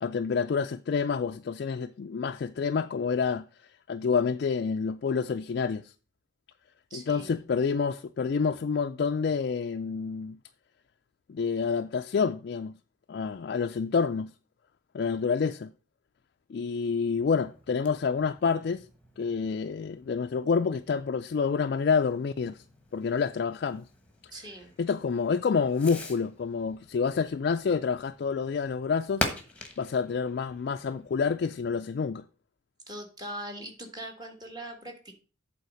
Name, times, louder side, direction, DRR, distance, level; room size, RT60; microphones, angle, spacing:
voice 1, 0.0-3.4 3.9-5.9 6.9-10.4 11.3-12.7 13.1-14.3 14.9-15.7 16.5-18.8 19.2-22.6 22.9-23.8 24.8-29.3 29.8-32.2, left 5 dB, 55° left, 0.3 m, -28 dB
voice 2, 6.9-7.4 24.3-24.8 32.9-35.1, right 1 dB, 20° right, 1.6 m, -41 dB
Fireworks, 17.1-31.7, left 2 dB, 5° left, 1.2 m, -43 dB
8.2 x 4.1 x 6.3 m
head